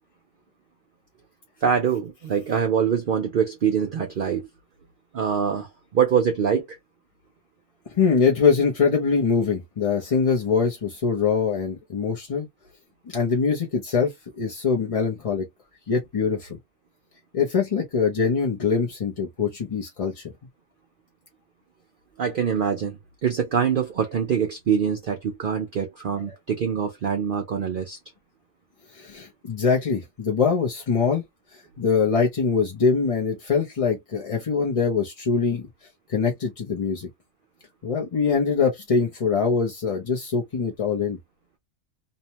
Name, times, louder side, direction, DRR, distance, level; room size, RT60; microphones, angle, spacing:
voice 1, 1.6-4.5 5.1-6.8 22.2-28.0, right 7 dB, 55° right, 0.6 m, -24 dB
voice 2, 7.9-12.5 13.1-15.5 15.9-16.6 17.3-20.3 28.9-31.2 31.5-35.7 36.1-37.1 37.8-41.2, left 5 dB, 40° left, 0.5 m, -23 dB
2.8 x 2.1 x 2.8 m
omnidirectional pair, 1.3 m